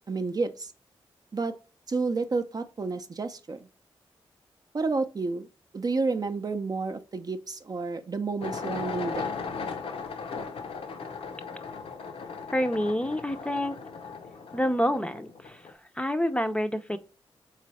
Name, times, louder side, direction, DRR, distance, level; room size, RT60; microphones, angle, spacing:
voice 1, 0.1-0.7 1.3-1.5 1.9-3.7 4.7-5.5 5.7-9.4, right 3 dB, 40° right, 0.5 m, -30 dB
sound 1, 8.4-15.7, left 5 dB, 75° left, 0.6 m, -37 dB
voice 2, 12.5-13.7 14.5-17.0, equal, 10° left, 0.5 m, -28 dB
3.7 x 3.2 x 4.1 m
cardioid pair, 60°, 10 cm